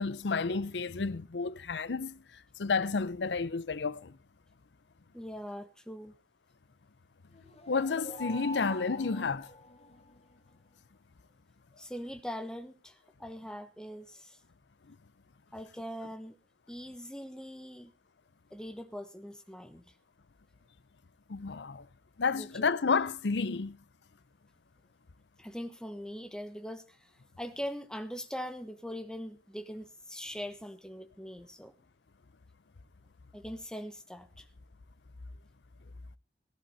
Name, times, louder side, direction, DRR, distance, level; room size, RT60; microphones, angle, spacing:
voice 1, 0.0-2.2 2.6-4.2 7.7-9.5 14.9-15.0 21.3-21.9 22.2-23.8, left 4 dB, 85° left, 0.7 m, -31 dB
voice 2, 5.1-6.1 11.7-14.4 15.5-16.4 16.7-17.9 18.5-19.9 22.3-22.6 25.4-27.1 27.4-31.7 33.3-34.5, equal, 5° left, 1.2 m, -42 dB
sound 1, 7.3-10.2, left 1 dB, 35° left, 1.7 m, -44 dB
17.0 x 11.5 x 4.1 m
head